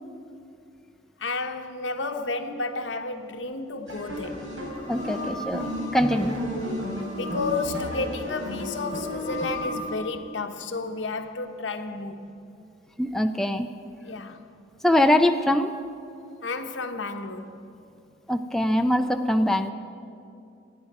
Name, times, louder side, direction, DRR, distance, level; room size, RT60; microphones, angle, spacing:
voice 1, 1.2-4.5 6.1-6.2 7.2-12.3 14.0-14.4 16.4-17.6, left 3 dB, 75° left, 1.0 m, -32 dB
sound 1, 3.9-9.9, equal, 85° right, 4.3 m, -32 dB
voice 2, 4.9-5.7 5.9-6.4 13.0-13.7 14.8-15.7 18.3-19.7, left 1 dB, ahead, 0.4 m, -22 dB
28.0 x 9.6 x 4.9 m
head